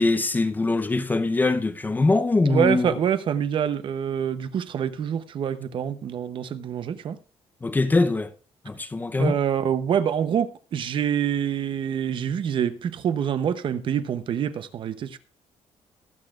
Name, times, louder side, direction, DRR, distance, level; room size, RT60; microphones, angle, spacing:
voice 1, 0.0-3.0 7.6-8.3 8.6-9.4, left 3 dB, 15° left, 0.7 m, -22 dB
voice 2, 2.5-7.2 9.2-15.2, right 8 dB, 50° right, 0.8 m, -26 dB
20.5 x 8.4 x 2.4 m
cardioid pair, 155°, 11 cm